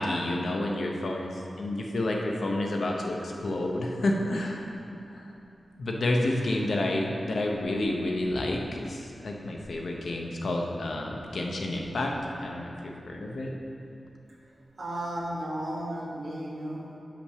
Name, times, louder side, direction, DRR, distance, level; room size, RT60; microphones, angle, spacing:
voice 1, 0.0-4.7 5.1-5.2 5.8-12.1 12.4-13.5, left 1 dB, 65° left, 0 dB, 0.8 m, -30 dB
voice 2, 14.8-17.0, right 1 dB, 55° right, -4 dB, 1.5 m, -34 dB
6.6 x 5.9 x 5.6 m, 2.7 s
wide cardioid pair, 140°, 0 cm